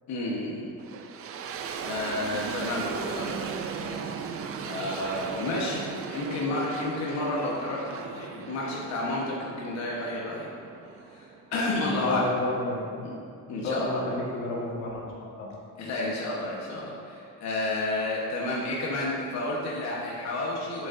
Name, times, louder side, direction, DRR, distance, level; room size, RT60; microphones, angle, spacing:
voice 1, 0.1-0.7 1.8-3.4 3.8-4.1 4.6-10.5 11.1-12.3 13.0-13.1 13.5-14.0 15.8-20.9, left 2 dB, 55° left, -4 dB, 1.2 m, -31 dB
sound 1, 0.8-11.7, right 6 dB, 45° right, 0.5 m, -37 dB
voice 2, 11.7-13.0 13.5-15.0 15.4-15.5, left 2 dB, 90° left, -4 dB, 1.7 m, -31 dB
8.0 x 7.7 x 2.6 m, 2.4 s
cardioid pair, 150°, 32 cm